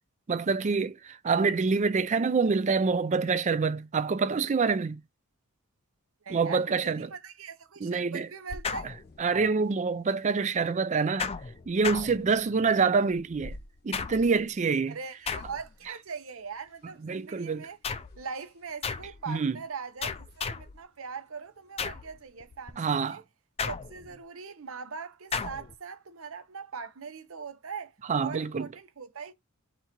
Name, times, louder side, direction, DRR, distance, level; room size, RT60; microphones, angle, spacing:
voice 1, 0.3-5.0 6.3-7.1 7.8-8.3 9.2-11.3 11.7-13.6 13.8-15.0 17.0-17.7 19.3-19.6 22.8-23.2 28.1-28.7, right 4 dB, 35° right, 0.4 m, -26 dB
voice 2, 6.2-8.9 14.9-17.8 18.2-23.2 23.7-29.3, right 5 dB, 65° right, 0.8 m, -41 dB
sound 1, 8.5-22.7, left 2 dB, 50° left, 0.7 m, -54 dB
sound 2, 8.6-9.5 11.2-12.7 13.9-14.5 15.3-15.9 17.8-18.3 18.8-19.2 20.0-20.8 21.8-22.2 23.6-24.2 25.3-25.7, left 5 dB, 30° left, 0.4 m, -35 dB
3.9 x 2.8 x 4.4 m
head